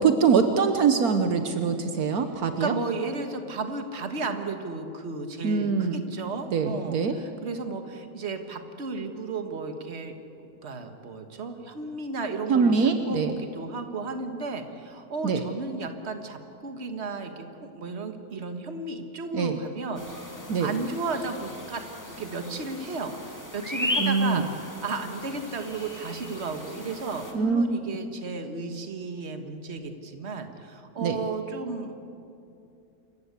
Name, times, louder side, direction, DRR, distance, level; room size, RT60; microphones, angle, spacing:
voice 1, 0.0-2.7 5.4-6.0 6.5-7.1 12.5-13.3 15.2-15.4 19.3-19.6 20.5-20.7 24.0-24.4 27.3-27.7 31.0-31.2, right 5 dB, 75° right, 8 dB, 1.5 m, -23 dB
voice 2, 2.6-12.7 13.0-20.0 20.6-21.8 22.1-31.9, right 3 dB, 45° right, 6 dB, 1.7 m, -34 dB
sound 1, 20.0-27.3, left 1 dB, 10° left, 2.1 m, -36 dB
27.5 x 15.0 x 8.2 m, 2.7 s
omnidirectional pair, 1.6 m